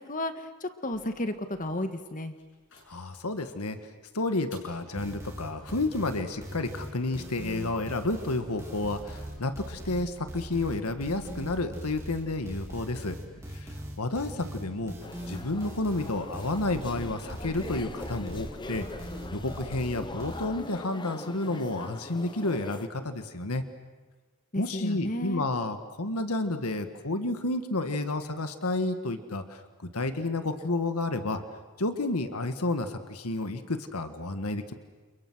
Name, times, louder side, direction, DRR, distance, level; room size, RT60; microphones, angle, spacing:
voice 1, 0.0-2.3 24.5-25.5, left 1 dB, 35° left, 8 dB, 1.7 m, -33 dB
sound 1, 0.9-3.8 4.2-11.0 11.8-14.4 14.7-20.1, left 1 dB, 60° left, 7.2 m, -55 dB
voice 2, 2.9-3.8 4.1-13.2 13.5-14.9 15.3-18.8 19.3-23.6 24.6-29.6 29.9-31.4 31.8-34.7, left 2 dB, 85° left, 8 dB, 1.7 m, -31 dB
sound 2, 5.0-20.4, right 1 dB, 15° right, 4.0 m, -40 dB
sound 3, 15.0-22.9, left 2 dB, 20° left, 0.9 m, -42 dB
29.5 x 28.5 x 6.3 m, 1.3 s
head